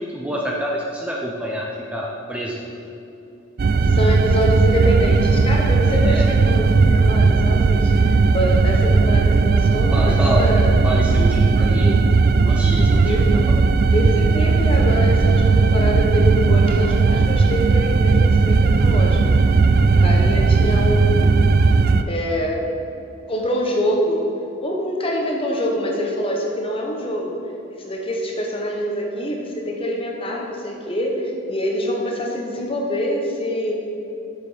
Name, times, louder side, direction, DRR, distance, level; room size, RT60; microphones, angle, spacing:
voice 1, 0.0-2.6 5.9-6.3 9.9-10.4 10.8-12.0 12.3-13.6, equal, 5° right, -3 dB, 0.7 m, -27 dB
sound 1, 3.6-22.0, right 4 dB, 50° right, 0.4 m, -16 dB
voice 2, 3.8-10.7 13.0-13.3 13.9-19.2 20.0-21.4 22.1-22.7 23.3-24.2 24.6-27.4 27.7-33.7, equal, 25° left, 0 dB, 1.2 m, -25 dB
8.5 x 6.8 x 5.0 m, 2.8 s
head